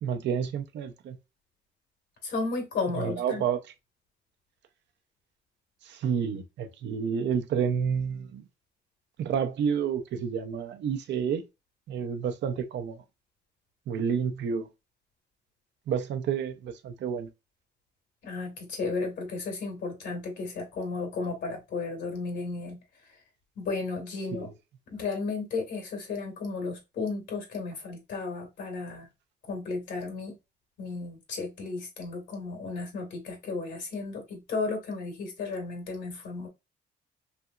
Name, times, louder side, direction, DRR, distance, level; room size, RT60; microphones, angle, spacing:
voice 1, 0.0-1.2 3.0-3.6 5.8-8.5 9.2-11.4 11.9-13.0 13.9-14.7 15.9-17.3 24.3-24.5, right 7 dB, 80° right, 0.6 m, -30 dB
voice 2, 2.2-3.4 18.2-22.8 23.5-24.5 24.9-29.1 29.5-30.3 30.8-36.5, left 4 dB, 80° left, 1.7 m, -34 dB
3.4 x 2.9 x 2.4 m
cardioid pair, 95°, 18 cm